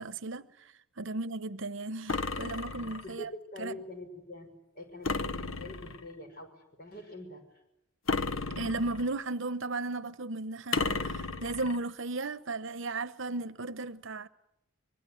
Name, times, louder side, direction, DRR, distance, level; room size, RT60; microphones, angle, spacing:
voice 1, 0.0-3.3 3.6-3.7 8.6-14.3, right 2 dB, 60° right, 1.0 m, -35 dB
sound 1, 2.1-3.1 5.0-6.1 8.1-9.2 10.7-11.8, left 4 dB, 70° left, 1.0 m, -33 dB
voice 2, 3.0-4.5 4.7-7.6, left 1 dB, 45° left, 5.9 m, -44 dB
25.0 x 22.0 x 9.7 m
head